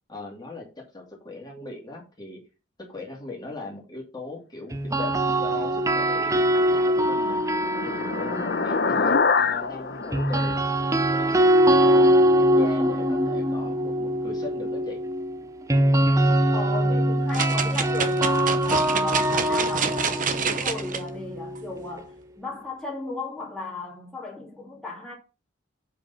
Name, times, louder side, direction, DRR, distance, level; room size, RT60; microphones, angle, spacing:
voice 1, 0.1-2.4 2.9-5.1 5.4-7.4 7.8-10.6 11.1-12.1 12.4-15.0, left 2 dB, 20° left, 2.4 m, -39 dB
sound 1, 4.7-8.9 10.1-22.0, right 1 dB, 15° right, 0.7 m, -23 dB
sound 2, 6.6-11.4, left 4 dB, 55° left, 0.8 m, -26 dB
voice 2, 16.5-25.2, left 3 dB, 5° left, 2.3 m, -36 dB
sound 3, 17.3-21.0 21.6-21.7, right 6 dB, 40° right, 1.0 m, -28 dB
7.4 x 5.1 x 5.6 m
head